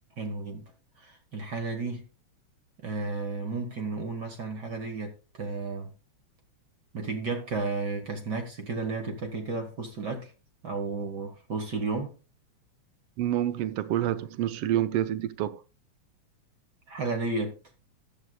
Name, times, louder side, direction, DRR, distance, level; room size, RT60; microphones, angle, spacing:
voice 1, 0.2-0.7 1.0-2.1 2.8-5.9 6.9-10.3 10.6-12.1 16.9-17.6, right 3 dB, 40° right, 1.8 m, -33 dB
voice 2, 13.2-15.6, right 12 dB, 80° right, 1.3 m, -28 dB
14.5 x 11.0 x 2.3 m
omnidirectional pair, 3.4 m